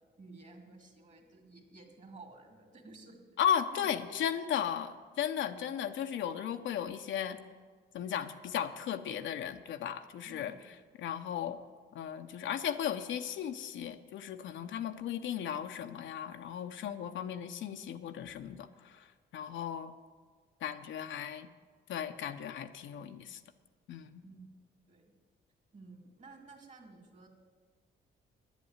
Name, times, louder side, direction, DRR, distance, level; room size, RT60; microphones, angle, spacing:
voice 1, 0.2-3.2 3.7-3.9 4.4-4.8 10.2-10.7 24.2-24.4 24.9-25.0 25.7-27.3, right 3 dB, 40° right, 4 dB, 2.5 m, -53 dB
voice 2, 3.4-7.4 7.9-10.5 11.0-11.6 11.9-19.1 19.3-19.9 20.6-21.5 21.9-23.4 23.9-24.2, left 9 dB, 75° left, 7 dB, 0.8 m, -36 dB
10.5 x 8.3 x 9.5 m, 1.5 s
cardioid pair, 90°, 20 cm